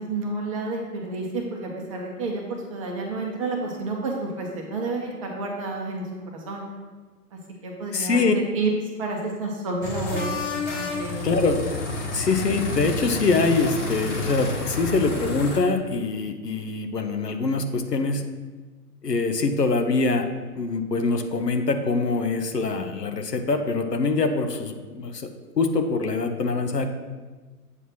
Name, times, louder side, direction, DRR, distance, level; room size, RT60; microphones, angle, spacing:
voice 1, 0.0-6.7 7.3-8.7 9.0-10.4 10.7-11.4, right 3 dB, 20° right, 0 dB, 0.7 m, -30 dB
voice 2, 7.9-8.3 11.2-11.7 12.1-18.2 19.0-20.3 20.5-26.9, left 3 dB, 80° left, 6 dB, 0.9 m, -24 dB
sound 1, 9.8-15.6, left 3 dB, 45° left, 1.6 m, -30 dB
7.9 x 3.1 x 5.7 m, 1.3 s
figure-of-eight pair, 125°, 48 cm